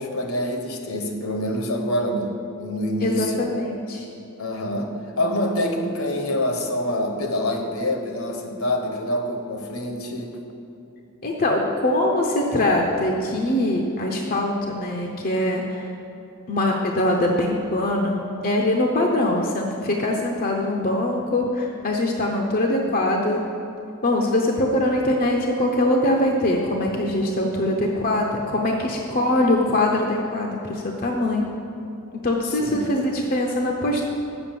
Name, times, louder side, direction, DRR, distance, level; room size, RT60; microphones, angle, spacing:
voice 1, 0.0-2.3 2.6-3.4 4.4-10.4 32.4-32.8, left 1 dB, 65° left, 3 dB, 1.1 m, -26 dB
voice 2, 3.0-4.0 11.2-15.8 16.5-23.4 24.0-31.5 32.2-34.0, left 1 dB, 40° left, 0 dB, 0.7 m, -22 dB
7.0 x 6.4 x 7.5 m, 2.9 s
head